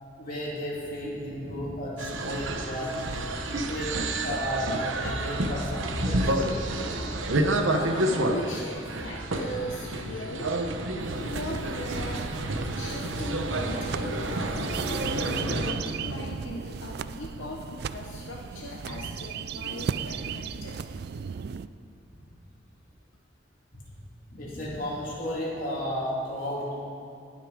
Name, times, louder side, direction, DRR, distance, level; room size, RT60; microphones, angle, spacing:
voice 1, 0.2-2.9 3.7-3.9 4.2-6.5 22.1-22.3 24.3-26.8, equal, 45° left, -6 dB, 3.2 m, -33 dB
sound 1, 2.0-15.7, right 1 dB, 85° right, 0.9 m, -29 dB
voice 2, 7.7-12.4 12.7-20.8, left 1 dB, 80° left, -1 dB, 0.9 m, -39 dB
sound 2, 11.0-21.7, right 6 dB, 55° right, 0.3 m, -36 dB
18.5 x 6.5 x 5.0 m, 2.7 s
head